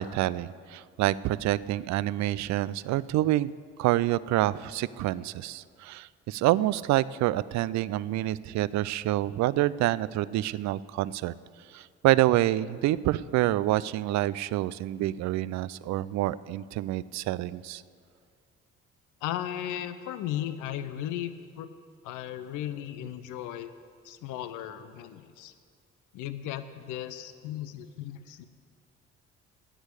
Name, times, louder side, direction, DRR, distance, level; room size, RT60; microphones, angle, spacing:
voice 1, 0.0-3.5 3.8-11.3 11.7-17.8, right 15 dB, 55° right, 18 dB, 0.5 m, -27 dB
voice 2, 19.2-21.7 22.0-23.7 24.0-25.5 26.1-28.5, left 11 dB, 65° left, 11 dB, 0.7 m, -36 dB
17.0 x 6.3 x 8.2 m, 2.1 s
hypercardioid pair, 45°, 34 cm